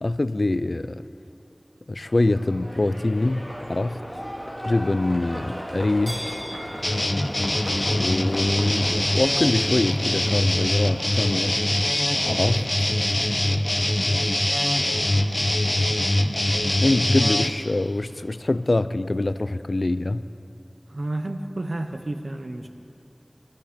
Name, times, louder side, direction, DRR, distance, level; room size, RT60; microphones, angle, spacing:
voice 1, 0.0-1.0 1.9-4.0 4.6-6.4 8.0-11.6 12.3-12.7 16.8-20.2, left 2 dB, 70° left, 0.4 m, -24 dB
Livestock farm animals working animals, 2.0-18.4, equal, 10° right, 3.2 m, -38 dB
sound 1, 6.8-17.5, left 1 dB, 40° left, 0.8 m, -23 dB
voice 2, 20.9-22.7, right 1 dB, 75° right, 0.9 m, -31 dB
21.0 x 12.0 x 5.2 m
wide cardioid pair, 45°, 0 cm